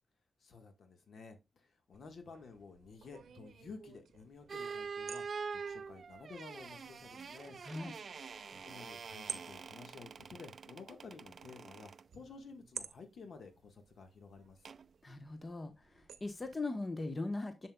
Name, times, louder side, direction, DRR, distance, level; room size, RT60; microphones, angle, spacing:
voice 1, 0.4-5.2 5.5-7.6 8.5-14.6, left 4 dB, 65° left, 1.5 m, -53 dB
sound 1, 1.9-16.6, right 7 dB, 75° right, 0.7 m, -53 dB
sound 2, 4.5-12.1 14.7-14.9, right 5 dB, 55° right, 0.3 m, -45 dB
voice 2, 15.0-17.7, left 2 dB, 30° left, 1.1 m, -40 dB
7.5 x 6.8 x 2.3 m
cardioid pair, 90°, 0 cm